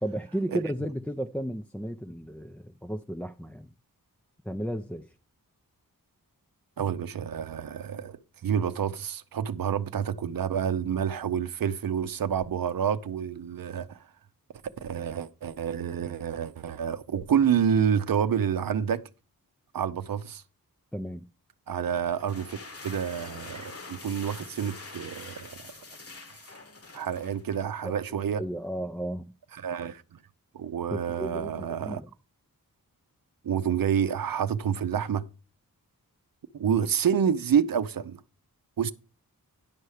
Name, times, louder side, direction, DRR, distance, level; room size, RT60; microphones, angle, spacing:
voice 1, 0.0-3.7 4.4-5.1 20.9-21.2 27.8-27.9 28.4-29.3 30.9-32.1, right 1 dB, 5° left, 0.4 m, -34 dB
voice 2, 6.8-14.0 14.8-19.0 19.7-20.4 21.7-22.6 22.8-25.7 26.3-26.4 26.9-28.4 29.6-30.0 30.5-32.0 33.4-35.2 36.5-38.2 38.8-38.9, right 8 dB, 75° right, 0.7 m, -28 dB
sound 1, 22.1-27.7, left 3 dB, 40° left, 1.1 m, -45 dB
10.5 x 5.6 x 4.8 m
wide cardioid pair, 105°, 36 cm